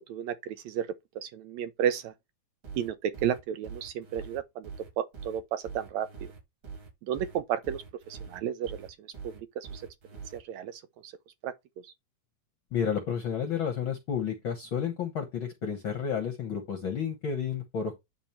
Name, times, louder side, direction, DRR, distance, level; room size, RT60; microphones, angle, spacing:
voice 1, 0.1-0.9 1.2-2.1 2.8-4.7 5.0-6.3 7.0-9.8 10.3-11.1 11.4-11.5 11.8-11.9, right 9 dB, 80° right, 1.8 m, -33 dB
sound 1, 2.6-10.4, right 5 dB, 40° right, 4.1 m, -44 dB
voice 2, 12.7-17.9, left 7 dB, 60° left, 1.4 m, -31 dB
10.0 x 3.5 x 4.3 m
omnidirectional pair, 3.6 m